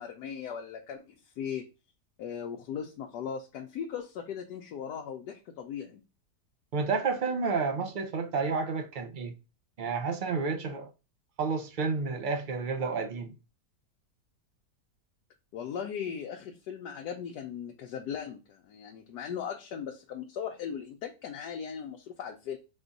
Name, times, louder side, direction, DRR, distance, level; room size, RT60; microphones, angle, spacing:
voice 1, 0.0-1.7 2.2-6.0 15.5-22.6, left 8 dB, 80° left, 1.2 m, -38 dB
voice 2, 6.7-9.3 9.8-10.9 11.4-13.3, right 4 dB, 60° right, 0.5 m, -30 dB
4.2 x 2.4 x 3.9 m
omnidirectional pair, 1.8 m